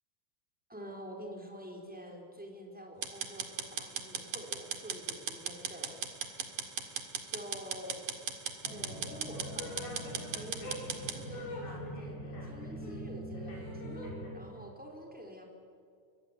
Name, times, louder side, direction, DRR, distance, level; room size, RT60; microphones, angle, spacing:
voice 1, 0.7-6.5 7.3-8.0 8.7-15.4, equal, ahead, 1 dB, 3.6 m, -48 dB
sound 1, 3.0-11.2, right 7 dB, 55° right, 3.1 m, -38 dB
sound 2, 8.6-14.3, equal, 65° left, 7.6 m, -42 dB
25.0 x 22.0 x 9.8 m, 2.3 s
omnidirectional pair, 4.9 m